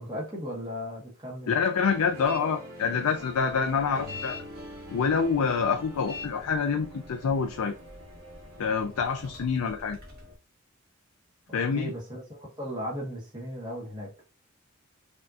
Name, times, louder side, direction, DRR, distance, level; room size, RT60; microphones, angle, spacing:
voice 1, 0.0-1.5 11.5-14.1, equal, 20° right, 1.2 m, -36 dB
voice 2, 1.5-4.4 4.9-7.7 8.6-10.0 11.5-11.9, left 5 dB, 85° left, 0.4 m, -26 dB
sound 1, 1.9-9.4, equal, 70° right, 1.4 m, -45 dB
sound 2, 2.3-2.4 2.8-10.3, left 3 dB, 45° right, 1.5 m, -46 dB
5.3 x 2.8 x 2.4 m
head